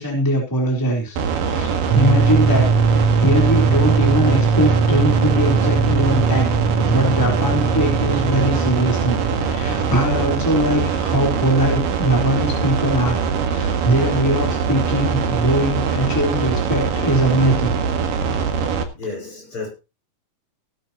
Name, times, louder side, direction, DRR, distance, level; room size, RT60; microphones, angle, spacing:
voice 1, 0.0-6.6 6.9-17.8, right 1 dB, 5° left, 3.6 m, -21 dB
sound 1, 1.2-18.8, right 6 dB, 70° right, 3.3 m, -22 dB
sound 2, 1.9-10.7, right 4 dB, 50° right, 5.6 m, -20 dB
voice 2, 7.5-7.8 18.9-19.7, left 3 dB, 35° left, 6.5 m, -32 dB
19.0 x 10.5 x 3.0 m
omnidirectional pair, 4.1 m